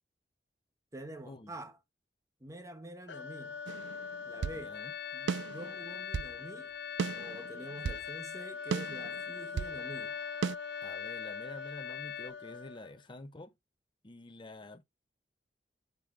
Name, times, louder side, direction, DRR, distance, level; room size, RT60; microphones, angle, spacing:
voice 1, 0.9-1.8 2.4-3.6 4.2-4.8 5.1-6.7 7.1-10.2, right 1 dB, 20° right, 0.9 m, -47 dB
sound 1, 3.1-13.0, left 5 dB, 85° left, 0.9 m, -43 dB
sound 2, 3.7-4.6 5.3-6.4 7.0-8.1 8.7-9.8 10.4-10.6, right 6 dB, 75° right, 0.3 m, -36 dB
voice 2, 4.5-4.9 10.8-13.5 14.0-14.8, left 2 dB, 30° left, 0.7 m, -48 dB
sound 3, 4.7-12.3, left 11 dB, 60° left, 0.3 m, -45 dB
6.9 x 3.7 x 4.4 m
head